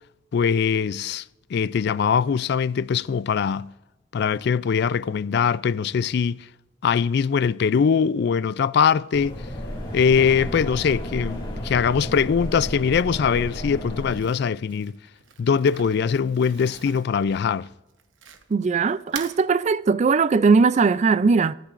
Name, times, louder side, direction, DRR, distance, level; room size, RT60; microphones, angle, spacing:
voice 1, 0.3-1.2 1.5-3.7 4.1-6.4 6.8-9.4 9.9-15.0 15.4-17.7, left 6 dB, 60° left, 0.3 m, -22 dB
sound 1, 9.1-14.2, equal, 25° left, 3.2 m, -32 dB
Crumpling crinkling, 14.1-18.7 19.0-19.4, right 7 dB, 85° right, 1.1 m, -42 dB
voice 2, 18.5-21.5, right 4 dB, 35° right, 0.3 m, -19 dB
28.5 x 10.5 x 2.5 m
head